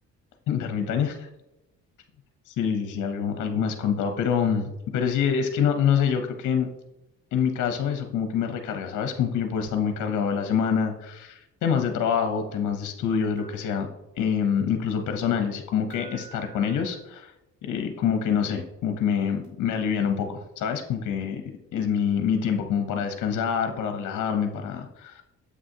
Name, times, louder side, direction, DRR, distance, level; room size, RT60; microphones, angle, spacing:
voice 1, 0.5-1.3 2.6-6.7 7.3-13.9 14.2-17.3 17.6-25.2, left 7 dB, 75° left, 6 dB, 0.8 m, -26 dB
sound 1, 13.4-13.6 15.9-17.0 19.4-19.6, right 5 dB, 75° right, 2.0 m, -47 dB
7.7 x 6.2 x 2.7 m, 0.93 s
cardioid pair, 90°, 30 cm